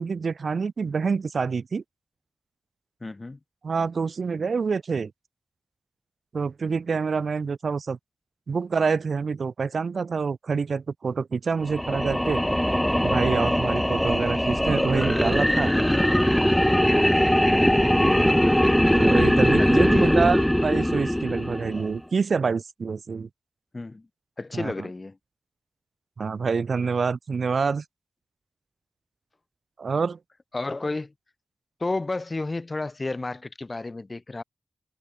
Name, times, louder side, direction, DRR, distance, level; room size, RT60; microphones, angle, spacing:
voice 1, 0.0-1.8 3.6-5.1 6.3-8.0 8.5-12.4 13.0-15.7 18.9-23.3 24.5-24.7 26.2-27.8 29.8-30.2, right 5 dB, 70° right, 4.9 m, -26 dB
voice 2, 3.0-3.4 19.6-20.3 23.7-24.1 24.4-25.2 30.5-31.1 31.8-34.4, left 2 dB, 30° left, 5.3 m, -31 dB
sound 1, 11.6-22.0, equal, 5° left, 0.9 m, -21 dB
wide cardioid pair, 120°, 0 cm